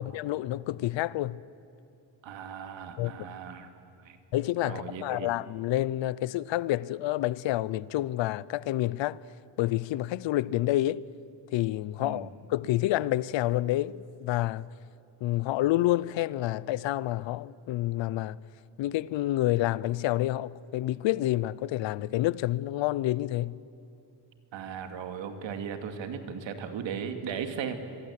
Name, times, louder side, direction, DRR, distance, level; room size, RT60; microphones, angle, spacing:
voice 1, 0.0-1.4 3.0-3.1 4.3-9.2 9.6-11.0 11.5-14.7 15.2-18.4 18.8-23.6, left 15 dB, 90° left, 0.7 m, -28 dB
voice 2, 2.2-3.7 4.0-4.2 4.6-5.3 12.0-12.3 24.5-27.8, right 7 dB, 90° right, 2.4 m, -37 dB
26.0 x 22.5 x 8.4 m
cardioid pair, 135°, 44 cm